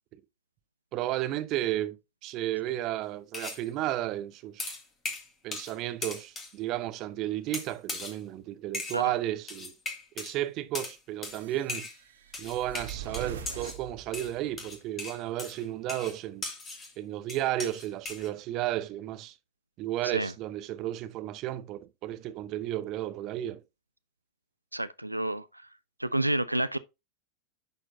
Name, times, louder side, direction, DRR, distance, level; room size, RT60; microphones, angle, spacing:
voice 1, 0.9-4.7 5.4-9.7 10.2-11.9 12.4-16.4 17.0-19.3 19.8-23.6, right 14 dB, 40° right, 0.7 m, -33 dB
sound 1, 3.3-3.6 4.6-5.8 6.0-6.5 7.5-8.2 8.7-9.0 9.5-10.3 10.7-11.0 11.2-11.4 11.7-12.0 12.3-13.8 14.1-16.9 17.3-18.3, left 3 dB, 20° left, 1.8 m, -38 dB
sound 2, 11.3-14.7, right 8 dB, 65° right, 1.3 m, -43 dB
voice 2, 24.7-25.7 26.0-26.8, right 1 dB, 85° right, 0.3 m, -30 dB
10.5 x 4.4 x 2.8 m
figure-of-eight pair, 90°, 0 cm